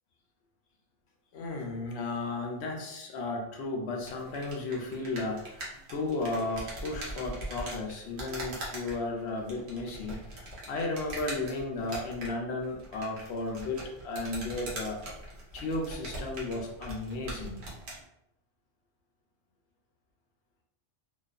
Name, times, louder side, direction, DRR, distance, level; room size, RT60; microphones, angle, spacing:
voice 1, 1.3-15.0 15.5-17.6, left 2 dB, 65° left, 1 dB, 0.8 m, -34 dB
sound 1, 4.0-18.0, right 1 dB, 65° right, 1.0 m, -42 dB
2.6 x 2.3 x 2.3 m, 0.84 s
omnidirectional pair, 1.3 m